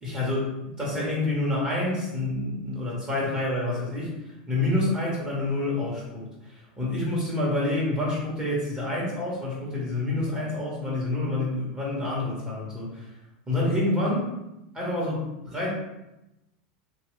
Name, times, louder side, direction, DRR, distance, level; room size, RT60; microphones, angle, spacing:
voice 1, 0.0-4.1 4.5-13.1 13.5-14.3 14.7-15.7, left 2 dB, 20° right, -6 dB, 1.5 m, -28 dB
2.9 x 2.9 x 3.2 m, 0.93 s
supercardioid pair, 115°, 5 cm